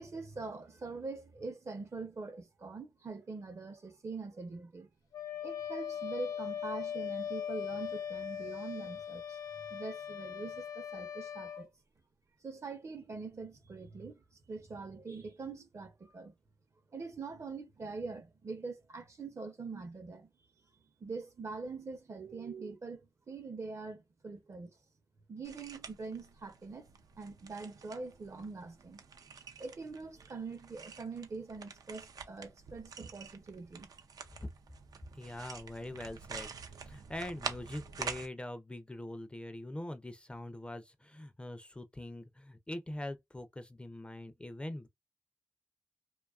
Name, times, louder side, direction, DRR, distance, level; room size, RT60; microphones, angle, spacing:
voice 1, 0.0-4.9 5.4-11.7 12.4-14.2 14.5-16.4 16.9-20.3 21.0-24.7 25.3-26.9 27.2-29.0 29.6-33.9, right 4 dB, 55° right, 0.6 m, -43 dB
Wind instrument woodwind instrument, 5.1-11.7, left 8 dB, 90° left, 0.5 m, -40 dB
sound 1, 25.4-38.3, right 5 dB, 90° right, 0.4 m, -47 dB
voice 2, 35.1-36.5 36.8-44.9, left 1 dB, 15° left, 0.3 m, -43 dB
2.6 x 2.3 x 2.3 m
wide cardioid pair, 85°, 6 cm